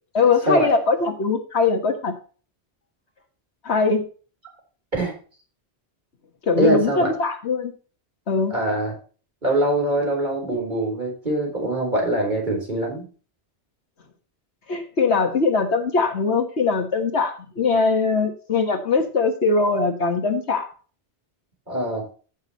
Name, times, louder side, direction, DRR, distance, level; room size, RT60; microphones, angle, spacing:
voice 1, 0.1-2.1 3.6-4.1 6.5-7.7 8.3-8.5 14.7-20.7, left 4 dB, 80° left, 6 dB, 1.8 m, -21 dB
voice 2, 6.6-7.1 8.5-8.9 9.4-13.1 21.7-22.0, right 1 dB, 45° right, 0 dB, 4.2 m, -23 dB
14.5 x 6.5 x 3.0 m, 0.38 s
omnidirectional pair, 1.1 m